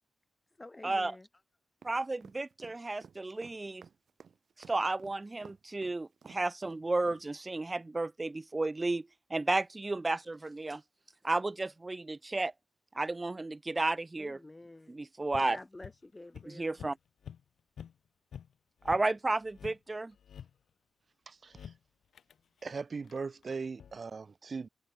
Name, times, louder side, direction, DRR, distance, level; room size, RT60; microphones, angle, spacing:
voice 1, 0.6-1.3 14.2-15.0 15.4-16.8, left 2 dB, 20° left, 4.0 m, -49 dB
voice 2, 1.8-3.8 4.7-10.8 11.2-12.5 12.9-14.4 14.9-15.6 16.5-17.0 18.8-20.1, right 2 dB, 25° right, 0.7 m, -33 dB
sound 1, 1.8-7.2, right 6 dB, 70° right, 3.0 m, -54 dB
sound 2, 15.3-16.0 16.3-16.5 16.8-16.9 17.2-17.4 17.8-17.9 18.3-18.5 18.8-19.1 19.4-20.5 21.5-21.8 22.1-22.3 22.6-24.0, left 8 dB, 90° left, 1.4 m, -48 dB
voice 3, 21.3-21.7 22.6-24.7, right 4 dB, 45° right, 1.1 m, -39 dB
wide cardioid pair, 95°, 0 cm